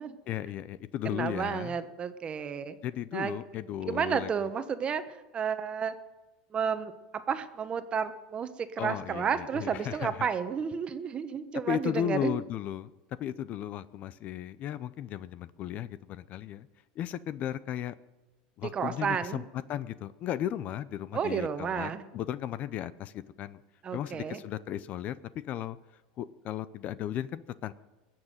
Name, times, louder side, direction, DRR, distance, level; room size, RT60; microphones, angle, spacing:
voice 1, 0.3-1.8 2.8-4.3 8.8-10.3 11.7-12.9 13.2-16.7 17.0-17.9 18.6-19.4 19.7-23.6 23.9-25.2 25.4-25.8 26.2-27.7, left 11 dB, 45° left, 17 dB, 0.6 m, -35 dB
voice 2, 1.0-2.8 3.1-3.4 3.8-5.0 5.3-5.9 6.5-12.4 18.6-19.4 21.1-22.0 23.8-24.4, right 7 dB, 30° right, 10 dB, 1.2 m, -32 dB
21.0 x 7.4 x 9.2 m, 1.1 s
supercardioid pair, 120°, 4 cm